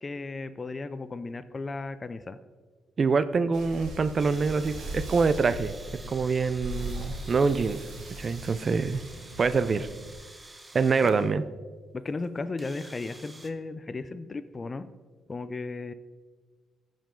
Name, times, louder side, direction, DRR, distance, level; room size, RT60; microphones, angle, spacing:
voice 1, 0.0-2.4 11.0-11.1 11.9-14.9 15.3-15.9, left 3 dB, 30° left, 13 dB, 0.5 m, -35 dB
voice 2, 3.0-5.7 6.1-7.9 8.2-9.0 9.4-9.9 10.7-11.4, right 4 dB, 40° right, 13 dB, 0.5 m, -25 dB
sound 1, 3.5-10.1, right 1 dB, 80° right, 2.0 m, -39 dB
sound 2, 4.2-11.3 12.2-12.3 12.6-13.5, right 2 dB, 15° right, 0.8 m, -49 dB
15.0 x 5.2 x 3.8 m, 1.4 s
cardioid pair, 90°, 0 cm